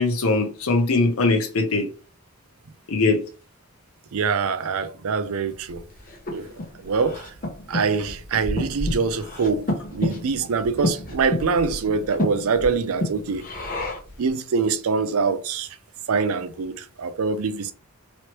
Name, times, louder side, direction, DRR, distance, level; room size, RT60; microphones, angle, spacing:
voice 1, 0.0-1.9 2.9-3.2, left 3 dB, 70° left, 0.7 m, -21 dB
voice 2, 4.1-5.8 6.3-6.5 6.8-7.3 7.7-13.5 14.2-15.8 16.1-17.7, right 5 dB, 75° right, 0.5 m, -24 dB
Breathing, 5.7-14.2, left 1 dB, 40° left, 0.9 m, -30 dB
3.1 x 2.9 x 3.0 m
head